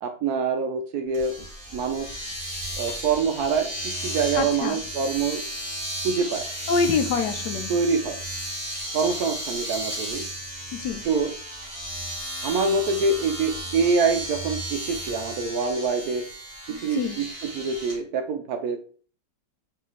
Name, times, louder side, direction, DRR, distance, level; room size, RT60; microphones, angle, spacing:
voice 1, 0.0-1.3 1.7-2.2 2.8-5.4 6.0-6.4 7.7-8.2 8.9-10.3 11.0-11.3 12.4-16.2 16.8-18.8, right 4 dB, 70° right, 6 dB, 0.9 m, -25 dB
Domestic sounds home sounds, 1.1-18.0, right 1 dB, 20° right, 1.7 m, -34 dB
voice 2, 4.3-4.8 6.7-7.7 10.7-11.0 16.7-17.2, left 5 dB, 75° left, 8 dB, 1.2 m, -26 dB
4.6 x 3.3 x 3.0 m, 0.44 s
omnidirectional pair, 1.9 m